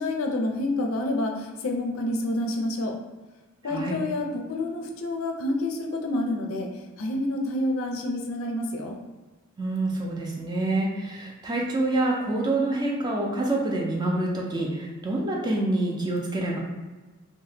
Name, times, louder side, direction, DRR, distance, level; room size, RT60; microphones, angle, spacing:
voice 1, 0.0-3.0 3.6-8.9, left 1 dB, 75° left, 2 dB, 0.5 m, -28 dB
voice 2, 3.6-4.0 9.6-16.6, right 2 dB, 20° right, -2 dB, 0.4 m, -27 dB
2.8 x 2.1 x 3.3 m, 1.2 s
head